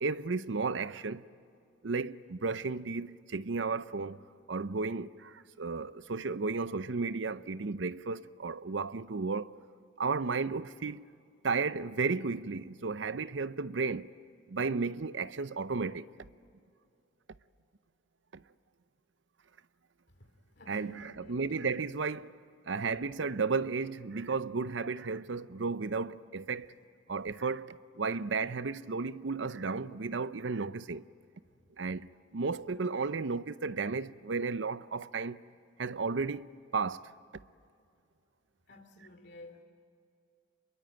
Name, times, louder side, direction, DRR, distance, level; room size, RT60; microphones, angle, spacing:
voice 1, 0.0-1.2 1.8-4.2 4.5-9.5 10.0-11.0 11.4-14.1 14.5-16.1 18.3-18.4 20.7-22.3 22.7-26.7 27.1-31.0 31.8-35.4 35.8-37.1, right 4 dB, 70° right, 0.7 m, -33 dB
voice 2, 20.2-21.5 38.7-39.6, left 1 dB, 60° left, 2.6 m, -52 dB
27.5 x 22.5 x 8.9 m
head